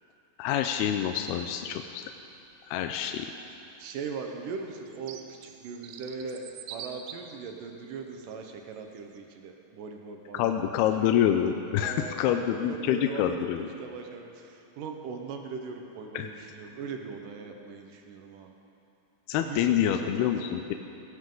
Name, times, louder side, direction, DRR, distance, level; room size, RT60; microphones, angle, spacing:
voice 1, 0.4-2.0 2.7-3.3 10.3-13.7 16.1-16.3 19.3-20.7, left 10 dB, 80° left, 5 dB, 2.4 m, -27 dB
sound 1, 0.6-1.0 2.5-2.6 3.7-7.5 8.1-8.3 9.0-9.2, right 8 dB, 90° right, 2.0 m, -45 dB
voice 2, 3.8-11.2 11.8-18.5 19.4-20.6, right 5 dB, 70° right, 3 dB, 2.1 m, -40 dB
18.5 x 16.5 x 3.9 m, 2.7 s
omnidirectional pair, 4.9 m